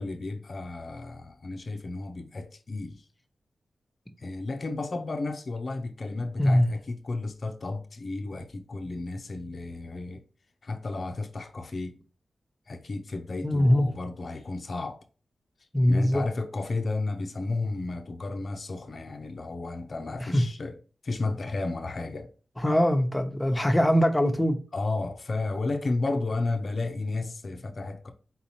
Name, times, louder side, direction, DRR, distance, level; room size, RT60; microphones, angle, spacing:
voice 1, 0.0-3.1 4.2-10.2 10.6-12.0 12.7-15.0 15.9-20.7 21.0-22.3 24.7-28.1, left 3 dB, 60° left, 0.6 m, -33 dB
voice 2, 13.4-13.9 15.7-16.2 20.3-20.4 22.6-24.6, equal, 15° left, 0.9 m, -22 dB
4.1 x 4.0 x 2.9 m
cardioid pair, 50°, 0 cm